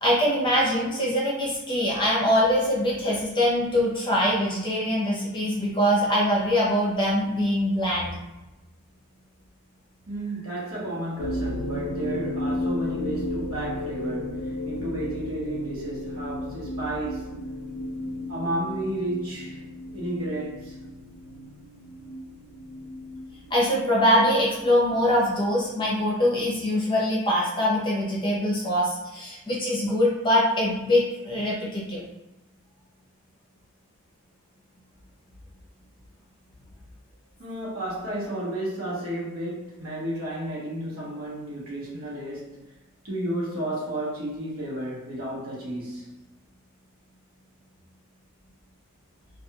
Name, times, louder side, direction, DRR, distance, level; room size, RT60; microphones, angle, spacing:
voice 1, 0.0-8.1 23.5-32.0, equal, 20° left, 0.6 m, -23 dB
voice 2, 10.1-17.3 18.3-19.6 19.9-20.8 37.4-42.6 43.0-46.2, right 1 dB, 75° right, 1.0 m, -32 dB
sound 1, 11.2-26.1, left 1 dB, 75° left, 0.4 m, -34 dB
2.4 x 2.3 x 2.8 m
head